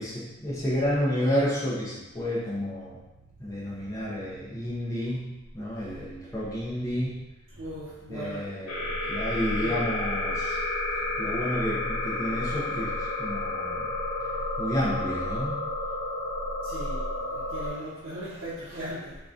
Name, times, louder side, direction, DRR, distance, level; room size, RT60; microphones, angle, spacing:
voice 1, 0.0-3.0 3.4-7.2 8.1-10.6 11.2-13.9 14.2-14.3 14.6-15.6, equal, 15° left, -8 dB, 0.6 m, -30 dB
voice 2, 7.5-8.5 9.5-9.9 11.0-11.1 14.3-14.4 16.6-19.2, equal, 60° right, -10 dB, 0.7 m, -38 dB
sound 1, 8.7-17.7, left 2 dB, 80° left, 0.9 m, -31 dB
3.8 x 2.3 x 2.4 m, 1.0 s
head